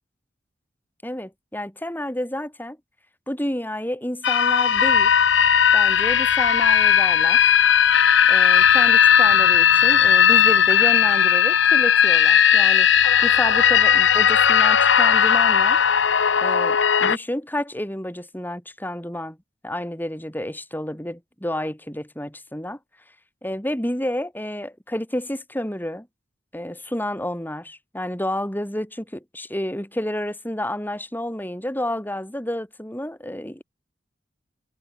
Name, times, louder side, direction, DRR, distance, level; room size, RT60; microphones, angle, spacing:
voice 1, 1.0-2.8 3.3-5.1 5.7-7.5 8.3-12.9 13.2-15.8 16.4-19.4 19.6-22.8 23.4-26.1 26.5-33.6, left 1 dB, 10° left, 6.4 m, -30 dB
sound 1, 4.2-17.2, left 8 dB, 75° left, 0.8 m, -17 dB
head